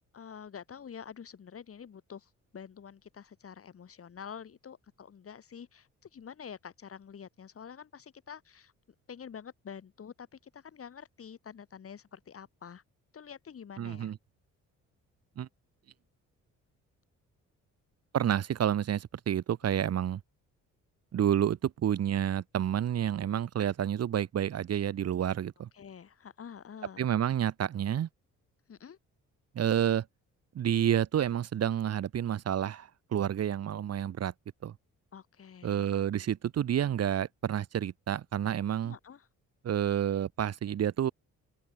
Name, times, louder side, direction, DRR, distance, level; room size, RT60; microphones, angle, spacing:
voice 1, 0.1-8.7 9.1-12.8 13.1-14.1 19.7-19.9 25.7-27.0 28.7-29.0 35.1-36.0 38.8-39.3, left 7 dB, 50° left, 4.3 m, -47 dB
voice 2, 13.8-14.2 15.4-15.5 18.1-20.2 21.1-25.7 27.0-28.1 29.5-30.0 30.5-34.3 34.6-34.7 35.6-38.9 39.6-41.1, right 10 dB, 55° right, 1.3 m, -29 dB
open air
cardioid pair, 90°, 30 cm